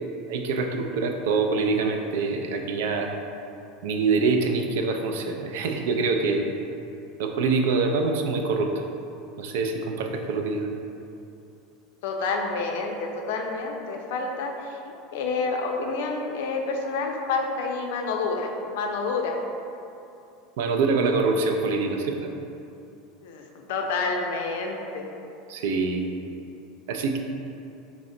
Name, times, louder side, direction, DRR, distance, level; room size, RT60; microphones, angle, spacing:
voice 1, 0.3-3.1 3.8-6.4 7.2-8.7 9.4-10.7 20.6-22.3 25.5-26.0 26.9-27.2, right 4 dB, 75° right, 4 dB, 0.3 m, -25 dB
voice 2, 12.0-19.4 23.2-25.1, left 3 dB, 75° left, 2 dB, 0.4 m, -29 dB
4.2 x 2.0 x 3.6 m, 2.7 s
supercardioid pair, 165°, 0 cm